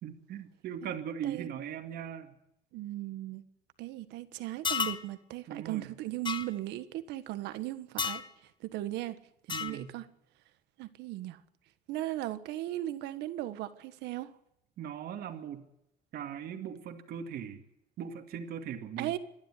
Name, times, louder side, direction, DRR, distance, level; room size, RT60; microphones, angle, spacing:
voice 1, 0.0-2.3 5.5-5.9 9.5-9.9 14.8-15.6 16.1-17.6 18.0-19.1, right 8 dB, 70° right, 2.4 m, -39 dB
voice 2, 1.2-1.6 2.7-3.4 3.8-9.2 9.5-10.0 10.8-11.4 11.9-14.3 19.0-19.2, right 15 dB, 90° right, 1.5 m, -37 dB
sound 1, 4.6-5.0 6.3-6.5 8.0-8.3 9.5-9.8, left 6 dB, 25° left, 1.2 m, -32 dB
27.0 x 11.5 x 9.6 m
cardioid pair, 110°, 17 cm